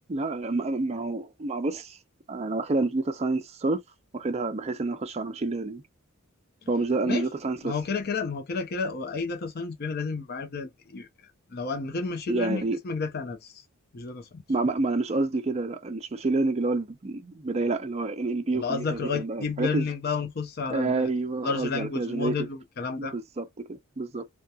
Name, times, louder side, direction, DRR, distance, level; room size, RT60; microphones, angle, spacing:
voice 1, 0.1-2.0 2.3-3.8 4.1-5.8 6.7-7.8 12.3-12.8 14.5-19.9 20.7-22.5 23.0-24.3, right 3 dB, 30° right, 0.5 m, -28 dB
voice 2, 7.6-11.1 11.5-13.5 13.9-14.4 18.5-21.1 21.4-23.1, left 4 dB, 45° left, 0.6 m, -31 dB
2.8 x 2.2 x 2.3 m
head